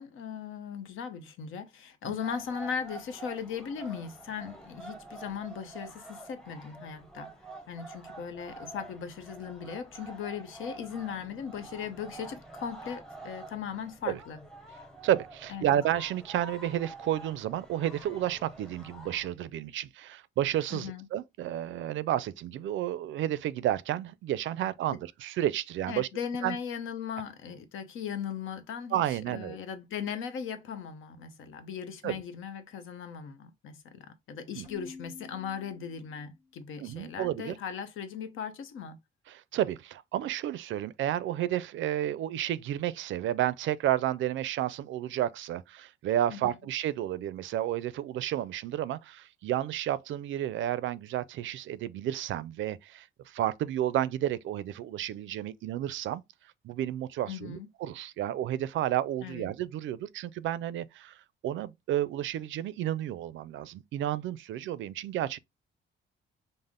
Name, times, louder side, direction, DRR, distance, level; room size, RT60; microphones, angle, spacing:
voice 1, 0.0-7.3 7.7-14.4 15.5-15.8 20.7-21.1 24.6-24.7 25.9-39.0 46.3-46.6 57.3-57.7 59.2-59.5, left 7 dB, 85° left, 0.8 m, -38 dB
sound 1, 2.2-19.3, right 2 dB, 5° left, 0.7 m, -47 dB
voice 2, 15.0-26.1 26.4-26.6 28.9-29.6 32.0-32.2 34.6-34.7 36.8-37.5 39.3-56.2 56.6-61.2 61.4-65.4, right 12 dB, 70° right, 0.4 m, -31 dB
Keyboard (musical), 34.6-36.5, left 4 dB, 65° left, 1.5 m, -49 dB
5.4 x 2.0 x 3.6 m
cardioid pair, 145°, 20 cm